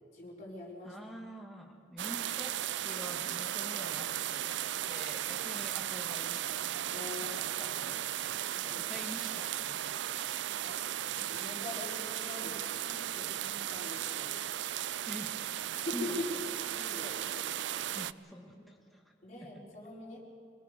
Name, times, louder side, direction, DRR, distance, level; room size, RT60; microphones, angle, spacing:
voice 1, 0.1-0.9 5.6-5.7 6.9-7.3 8.7-8.9 10.6-10.8 11.1-14.4 15.7-16.4 16.7-17.5 18.5-18.6 19.2-20.2, left 2 dB, 40° left, -7 dB, 5.0 m, -43 dB
voice 2, 0.8-2.5 2.8-4.5 4.9-6.8 7.2-8.1 8.6-10.2 15.1-16.2 18.0-19.0 19.4-19.6, equal, ahead, 0 dB, 2.2 m, -46 dB
sound 1, 2.0-18.1, right 12 dB, 75° right, 0.4 m, -36 dB
25.5 x 18.0 x 6.8 m, 2.4 s
head